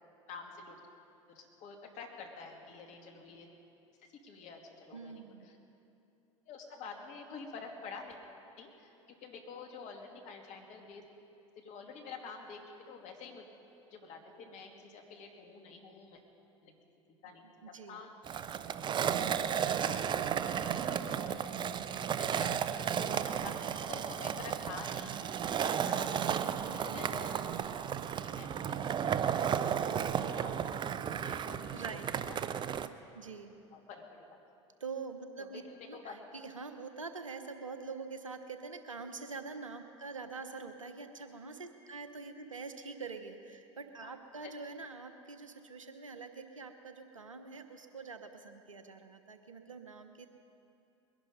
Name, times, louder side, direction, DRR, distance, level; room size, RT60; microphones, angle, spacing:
voice 1, 0.3-0.8 1.3-3.5 4.0-5.6 6.5-8.2 8.6-11.0 11.6-12.6 12.9-13.4 13.9-16.2 16.6-16.7 17.2-18.1 19.6-20.0 20.4-20.8 21.1-21.7 22.1-22.5 23.1-25.1 25.6-26.4 26.8-27.3 28.2-30.7 31.2-32.4 33.7-34.4 35.4-36.2 44.0-44.1 44.4-44.5, left 5 dB, 45° left, 2 dB, 2.5 m, -49 dB
voice 2, 4.9-5.5 17.6-18.0 31.7-32.1 33.1-33.5 34.8-35.6 35.9-50.3, right 4 dB, 90° right, 8 dB, 1.0 m, -45 dB
Skateboard, 18.2-32.9, right 8 dB, 30° right, 0.6 m, -34 dB
21.5 x 11.0 x 5.4 m, 2.8 s
hypercardioid pair, 80°, 16 cm